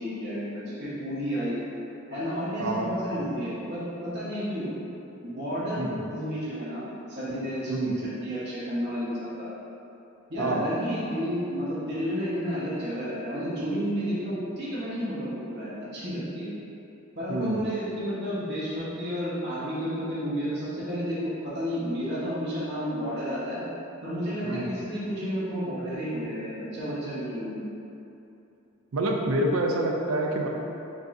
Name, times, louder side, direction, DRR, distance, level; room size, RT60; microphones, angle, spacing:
voice 1, 0.0-1.6 2.1-4.7 5.2-6.8 7.1-9.5 10.3-16.5 17.1-23.6 24.0-27.6, equal, 55° right, -10 dB, 1.2 m, -31 dB
voice 2, 2.6-3.2 5.8-6.0 7.7-7.9 10.4-10.7 17.3-17.6 24.4-24.7 28.9-30.5, right 1 dB, 85° right, 1 dB, 0.5 m, -27 dB
5.2 x 3.7 x 2.6 m, 2.9 s
head